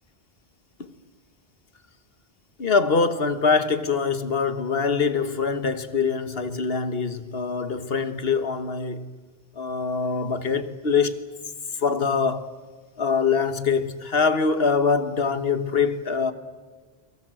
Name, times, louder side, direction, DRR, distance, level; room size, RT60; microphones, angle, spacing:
voice 1, 2.6-9.1 9.6-11.2 11.8-12.5 13.0-16.3, left 5 dB, 65° left, 1.5 m, -24 dB
30.0 x 23.5 x 7.7 m
omnidirectional pair, 1.1 m